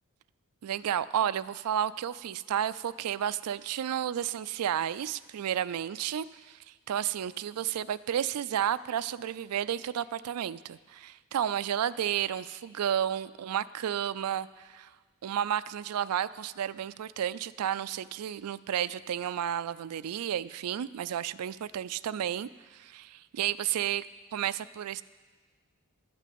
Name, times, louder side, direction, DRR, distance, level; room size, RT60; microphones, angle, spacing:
voice 1, 0.6-14.9 15.2-24.0 24.3-25.0, right 10 dB, 80° right, 16 dB, 0.4 m, -32 dB
11.5 x 6.1 x 8.6 m, 1.4 s
head